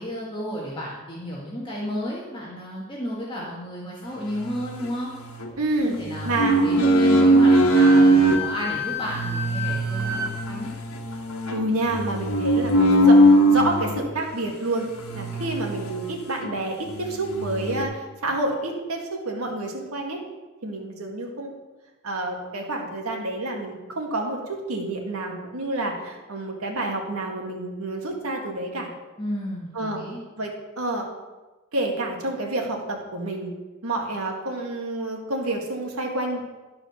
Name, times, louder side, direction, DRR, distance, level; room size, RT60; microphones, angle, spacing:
voice 1, 0.0-5.1 5.8-10.7 29.2-30.2, equal, 25° left, -5 dB, 1.7 m, -32 dB
sound 1, 4.3-5.5 6.0-8.4 9.0-14.0 14.9-16.1 16.4-16.5 16.9-17.8, right 1 dB, 85° left, 1.4 m, -20 dB
voice 2, 5.6-6.0 6.2-6.5 11.5-14.9 15.1-20.2 20.6-21.5 22.0-28.9 29.7-30.0 30.4-31.1 31.7-33.5 33.8-36.4, right 2 dB, 85° right, 1 dB, 2.0 m, -28 dB
Wind instrument woodwind instrument, 7.5-10.3, left 2 dB, 10° right, 1.3 m, -32 dB
12.5 x 4.8 x 6.5 m, 1.2 s
head